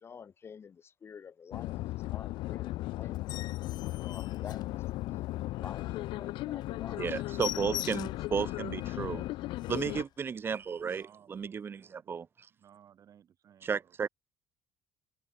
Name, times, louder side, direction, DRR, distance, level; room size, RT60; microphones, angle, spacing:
voice 1, 0.0-3.3 4.0-7.0, left 6 dB, 30° left, 1.2 m, -49 dB
sound 1, 1.5-10.0, left 17 dB, 70° left, 0.5 m, -36 dB
sound 2, 3.1-5.3 5.7-5.8 6.2-6.3 6.6-6.7 7.0-8.3 8.8-8.9 9.3-9.4 9.6-10.1 10.8-11.0, left 13 dB, 55° left, 1.2 m, -42 dB
voice 2, 5.5-9.4 10.8-11.6 12.0-12.2 12.5-14.1, right 9 dB, 40° right, 3.5 m, -60 dB
voice 3, 7.0-9.2 9.7-11.0 11.3-12.3 13.6-14.1, right 6 dB, 25° right, 0.6 m, -33 dB
cardioid pair, 150°, 9 cm